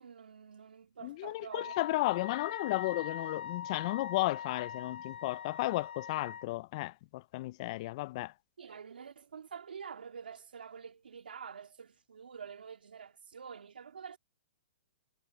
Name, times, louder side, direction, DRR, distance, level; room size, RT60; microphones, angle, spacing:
voice 1, 0.0-1.7 8.6-14.2, right 6 dB, 90° right, 2.6 m, -47 dB
voice 2, 1.0-8.3, left 19 dB, 40° left, 0.4 m, -34 dB
Wind instrument woodwind instrument, 1.5-6.5, left 8 dB, 80° left, 2.1 m, -42 dB
hypercardioid pair, 150°, 5 cm